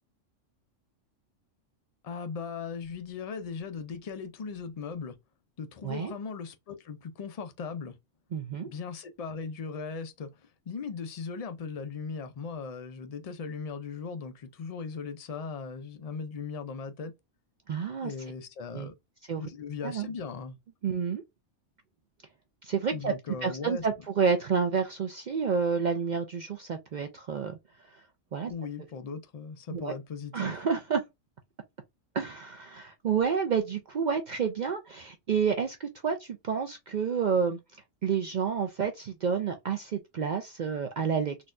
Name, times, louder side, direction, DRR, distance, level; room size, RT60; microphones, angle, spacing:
voice 1, 2.0-5.2 5.6-8.0 8.7-17.1 18.0-18.9 19.4-20.6 22.9-23.9 28.5-30.5, left 5 dB, 65° left, 0.3 m, -38 dB
voice 2, 8.3-8.7 17.7-18.1 18.7-18.9 19.3-19.4 19.8-20.1 20.8-21.2 22.6-23.1 23.4-27.6 28.3-28.5 29.7-29.9 30.3-31.0 32.1-37.6 38.0-41.5, right 6 dB, 70° right, 0.4 m, -29 dB
4.0 x 2.2 x 2.4 m
omnidirectional pair, 1.3 m